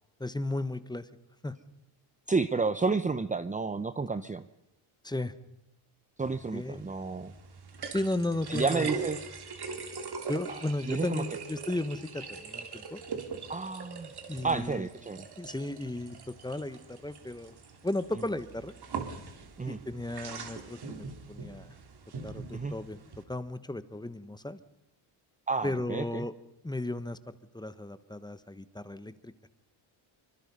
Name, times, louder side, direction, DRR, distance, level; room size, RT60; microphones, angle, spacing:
voice 1, 0.2-1.1 1.4-1.5 5.0-5.3 6.5-6.8 7.9-9.0 10.3-13.0 14.3-14.9 15.4-17.5 17.8-18.7 19.7-21.7 22.2-23.0 23.3-24.6 25.6-26.3 26.6-29.3, left 1 dB, 10° left, 13 dB, 1.2 m, -35 dB
voice 2, 2.3-4.5 6.2-7.3 8.5-9.2 10.9-11.2 13.5-14.1 14.4-15.2 19.6-19.8 22.5-22.7 25.5-26.3, right 4 dB, 15° right, 12 dB, 0.7 m, -30 dB
sound 1, 6.2-23.2, right 5 dB, 50° right, 3.4 m, -42 dB
25.5 x 24.5 x 5.6 m, 0.87 s
cardioid pair, 100°, 49 cm